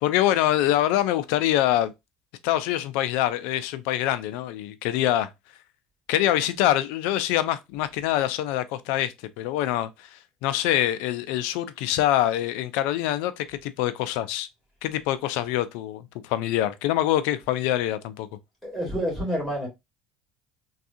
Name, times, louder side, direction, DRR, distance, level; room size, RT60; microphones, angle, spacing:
voice 1, 0.0-1.9 2.4-5.3 6.1-14.5 14.8-18.3, left 13 dB, 80° left, 0.4 m, -25 dB
voice 2, 18.6-19.7, equal, 5° left, 2.1 m, -28 dB
3.5 x 2.3 x 2.6 m
supercardioid pair, 100°, 2 cm